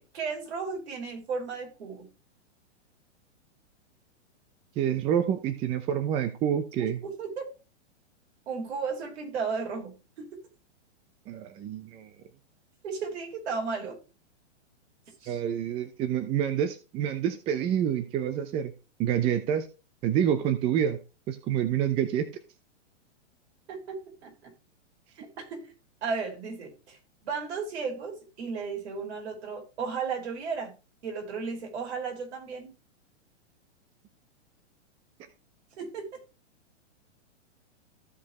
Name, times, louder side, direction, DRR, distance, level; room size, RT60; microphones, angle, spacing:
voice 1, 0.0-2.1 6.8-7.4 8.5-10.4 12.8-14.0 15.2-15.4 23.7-24.5 25.2-25.7 26.0-30.7 31.0-32.7 35.8-36.1, right 5 dB, 60° right, 5.2 m, -35 dB
voice 2, 4.8-7.0 11.3-12.1 15.3-18.7 19.0-19.7 20.0-21.0 21.3-22.3, right 9 dB, 15° right, 0.6 m, -27 dB
15.0 x 5.1 x 3.0 m
hypercardioid pair, 155°, 36 cm